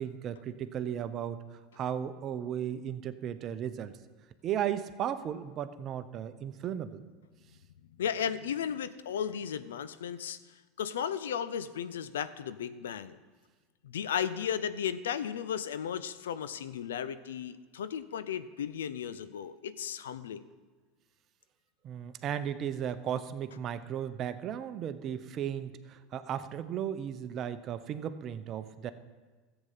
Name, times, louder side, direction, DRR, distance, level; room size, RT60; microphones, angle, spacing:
voice 1, 0.0-1.4 1.7-4.0 4.4-7.0 21.8-28.9, right 9 dB, 45° right, 12 dB, 0.8 m, -35 dB
voice 2, 8.0-10.4 10.8-13.2 13.8-20.4, left 8 dB, 80° left, 14 dB, 0.5 m, -35 dB
13.5 x 8.0 x 5.7 m, 1.4 s
hypercardioid pair, 80°, 0 cm